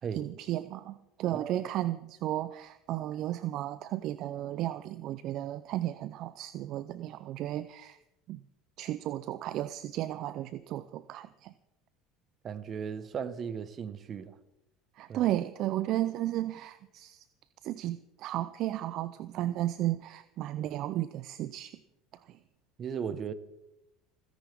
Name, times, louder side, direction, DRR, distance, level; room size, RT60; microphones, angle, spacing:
voice 1, 0.1-8.0 8.3-8.4 8.8-11.5 15.0-17.2 17.6-21.7 22.3-22.4, right 14 dB, 55° right, 0.5 m, -34 dB
voice 2, 1.3-1.6 12.4-14.3 15.1-15.3 22.8-23.3, right 7 dB, 40° right, 1.3 m, -36 dB
30.0 x 10.0 x 3.6 m
hypercardioid pair, 80°, 0 cm